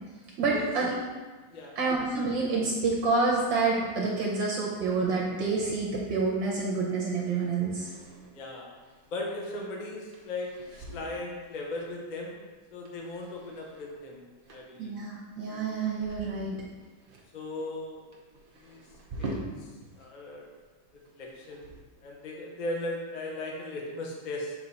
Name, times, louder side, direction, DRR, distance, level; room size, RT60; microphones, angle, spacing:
voice 1, 0.4-0.9 1.7-7.9 14.8-16.6, right 4 dB, 70° right, -3 dB, 1.4 m, -28 dB
sound 1, 7.8-20.1 20.4-22.0, right 2 dB, 85° right, 0.4 m, -46 dB
voice 2, 8.3-8.7 9.1-12.5 12.7-14.9 17.3-18.0 18.6-18.8 19.2-19.7 20.0-20.5 21.2-21.7 22.0-24.5, left 2 dB, 65° left, -1 dB, 0.4 m, -37 dB
7.0 x 3.6 x 4.2 m, 1.4 s
omnidirectional pair, 2.3 m